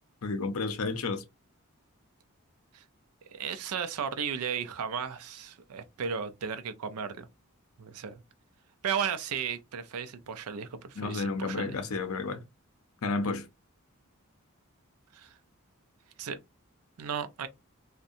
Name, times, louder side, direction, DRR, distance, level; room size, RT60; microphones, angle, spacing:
voice 1, 0.2-1.2 11.0-12.4 13.0-13.5, left 3 dB, 75° left, 0.6 m, -31 dB
voice 2, 3.2-7.3 7.8-8.2 8.8-11.8 15.1-15.4 16.2-16.4 17.0-17.5, right 7 dB, 85° right, 0.4 m, -35 dB
2.7 x 2.1 x 2.5 m
head